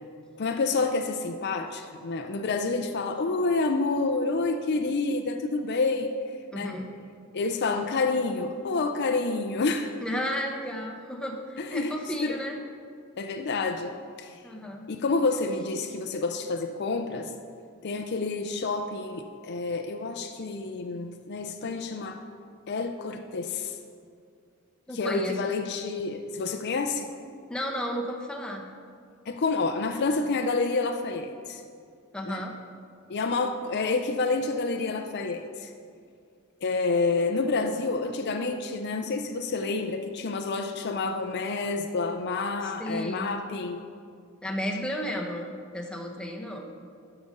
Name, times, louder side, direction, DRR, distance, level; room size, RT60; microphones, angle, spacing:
voice 1, 0.4-6.1 6.5-6.7 7.3-9.9 11.6-12.0 12.2-12.4 13.2-13.9 14.2-14.4 14.9-17.3 17.8-22.2 22.7-23.8 24.9-27.1 29.3-31.6 32.2-32.4 33.1-35.7 36.6-43.8, left 3 dB, 50° left, 5 dB, 0.5 m, -28 dB
voice 2, 6.5-6.9 10.0-12.6 14.4-14.8 24.9-25.4 27.5-28.6 32.1-32.6 42.6-43.3 44.4-46.7, equal, 5° left, 0 dB, 0.9 m, -33 dB
12.5 x 5.0 x 5.3 m, 2.2 s
head